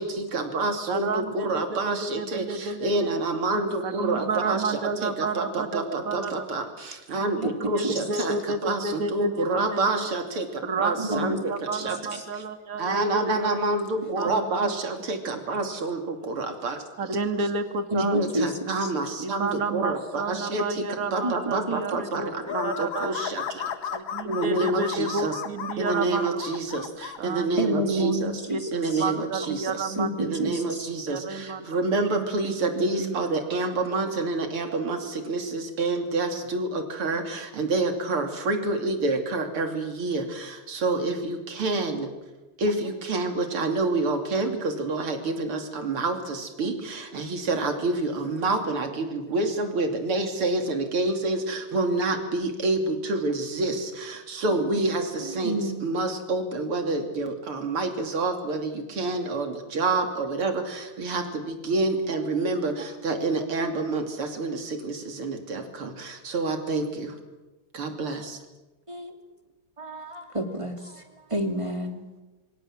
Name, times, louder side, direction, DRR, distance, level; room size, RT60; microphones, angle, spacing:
voice 1, 0.3-12.0 12.8-16.8 18.0-23.7 24.2-25.4 25.8-28.4 28.7-42.1 42.6-67.2 67.7-68.4, right 2 dB, 80° right, 6 dB, 3.8 m, -28 dB
voice 2, 0.9-3.1 3.8-6.4 7.4-10.0 10.6-13.8 14.2-14.7 17.0-18.3 19.2-22.3 22.6-23.2 23.9-26.4 27.2-27.6 28.0-28.1 28.5-30.4 31.1-31.8 32.8-33.2, right 3 dB, 40° right, 9 dB, 2.1 m, -31 dB
voice 3, 11.0-11.5 12.1-12.2 14.2-14.3 17.9-18.5 18.8-18.9 21.2-21.8 27.6-29.0 30.0-30.9 55.2-55.8 68.9-69.1 69.8-71.0 71.3-72.0, right 1 dB, 15° right, 5 dB, 2.8 m, -29 dB
sound 1, 22.4-27.2, left 8 dB, 65° left, 2.1 m, -34 dB
26.0 x 25.0 x 7.6 m, 1.1 s
omnidirectional pair, 2.4 m